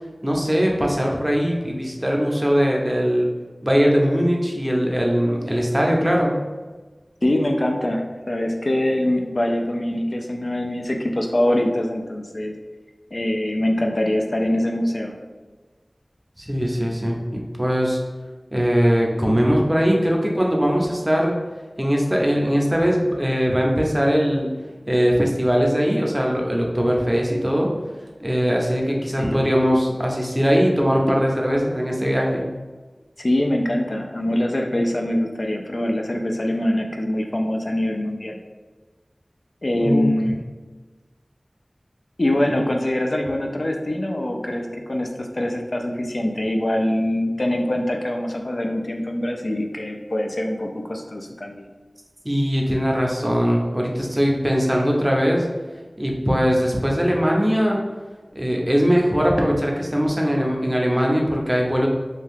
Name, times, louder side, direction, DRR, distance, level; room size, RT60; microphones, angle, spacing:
voice 1, 0.2-3.3 3.6-6.3 16.4-18.0 18.5-21.4 21.8-24.5 24.9-27.7 28.2-32.5 39.8-40.0 42.4-42.6 52.2-55.5 56.0-57.8 58.3-61.9, equal, 20° right, -1 dB, 0.6 m, -20 dB
voice 2, 7.2-12.5 13.1-15.2 29.2-29.6 33.2-38.4 39.6-40.4 42.2-51.7, left 1 dB, 60° left, 2 dB, 0.3 m, -23 dB
2.6 x 2.3 x 3.5 m, 1.3 s
wide cardioid pair, 45°, 0 cm